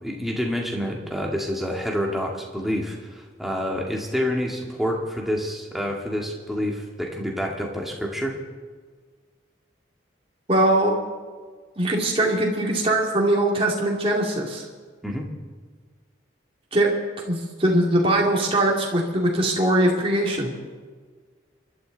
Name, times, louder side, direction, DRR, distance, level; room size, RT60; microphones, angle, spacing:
voice 1, 0.0-8.4 15.0-15.3, equal, ahead, -1 dB, 2.1 m, -28 dB
voice 2, 10.5-10.9 11.8-14.6 16.7-16.9 17.2-20.5, right 1 dB, 30° right, -1 dB, 2.6 m, -21 dB
28.0 x 12.5 x 4.0 m, 1.5 s
head